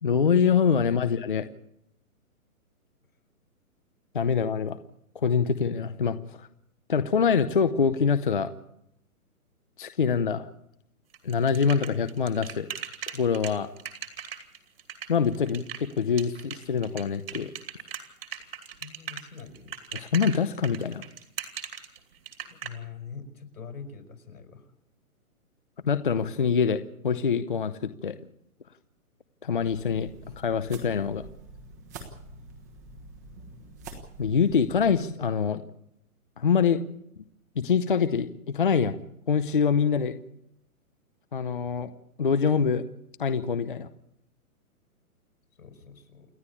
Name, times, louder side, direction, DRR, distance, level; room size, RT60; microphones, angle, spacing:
voice 1, 0.0-1.5 4.1-4.8 5.1-6.5 6.9-8.5 9.8-10.5 11.2-12.7 13.1-13.7 15.1-17.5 19.9-21.0 25.9-28.2 29.4-30.1 30.4-31.3 34.2-35.6 36.4-36.8 37.6-39.0 39.3-40.2 41.3-41.9 42.2-42.8 43.2-43.9, left 6 dB, 35° left, 11 dB, 0.7 m, -25 dB
sound 1, 11.1-22.7, right 8 dB, 40° right, 2.6 m, -38 dB
voice 2, 18.8-19.8 22.5-24.7 45.6-46.3, left 6 dB, 80° left, 6 dB, 5.5 m, -43 dB
sound 2, 29.6-35.0, right 2 dB, 10° right, 1.3 m, -46 dB
28.5 x 11.0 x 8.5 m, 0.78 s
hypercardioid pair, 180°, 44 cm